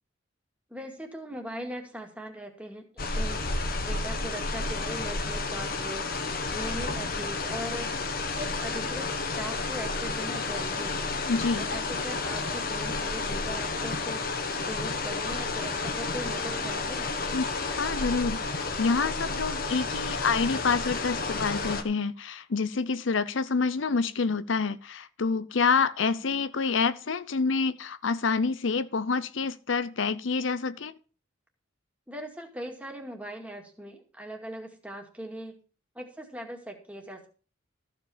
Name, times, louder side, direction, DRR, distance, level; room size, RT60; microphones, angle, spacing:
voice 1, 0.7-3.4 3.8-7.9 8.3-11.2 11.6-14.3 14.6-17.1 32.1-35.6 35.9-37.3, equal, 5° right, 2.3 m, -40 dB
sound 1, 3.0-21.8, left 3 dB, 50° left, 1.4 m, -31 dB
voice 2, 11.3-11.6 17.3-31.0, left 4 dB, 70° left, 0.6 m, -27 dB
14.5 x 5.3 x 7.3 m
head